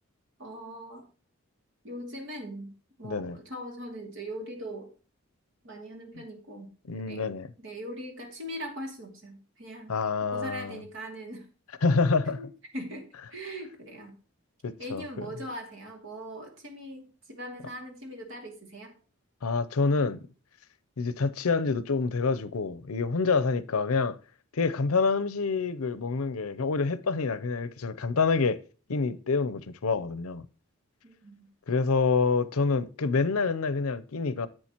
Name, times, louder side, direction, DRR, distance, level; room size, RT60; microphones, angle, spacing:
voice 1, 0.4-1.1 1.8-2.7 3.0-4.9 5.6-6.7 7.1-9.9 10.3-11.5 12.3-13.1 13.3-14.2 14.8-19.0 31.0-31.5, equal, 60° right, 2.5 m, -40 dB
voice 2, 3.0-3.4 6.9-7.5 9.9-10.8 11.8-12.4 14.6-15.3 19.4-20.2 21.0-24.2 24.5-28.6 28.9-30.5 31.7-34.5, left 4 dB, 80° left, 0.6 m, -27 dB
11.0 x 7.7 x 2.9 m
head